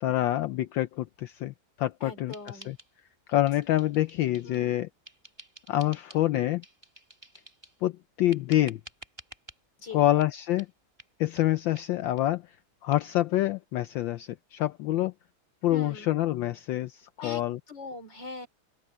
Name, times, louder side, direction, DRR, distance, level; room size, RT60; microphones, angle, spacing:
voice 1, 0.0-2.3 2.7-2.8 3.3-4.9 5.7-6.6 7.8-8.8 9.9-10.7 11.2-12.4 12.8-15.1 15.6-17.6, left 14 dB, 70° left, 1.3 m, -26 dB
voice 2, 2.0-2.7 4.4-4.8 9.8-10.1 15.7-16.1 17.2-17.4 17.7-18.5, left 3 dB, 55° left, 4.1 m, -41 dB
sound 1, 2.3-3.2 3.4-4.7 5.0-6.3 6.6-7.8 8.3-9.6 10.2-10.3 10.6-10.7 11.0-11.1 11.4-11.5 11.7-11.9 12.2-12.3 12.5-12.6 12.9-13.0, right 1 dB, 10° right, 2.3 m, -51 dB
open air
omnidirectional pair, 2.3 m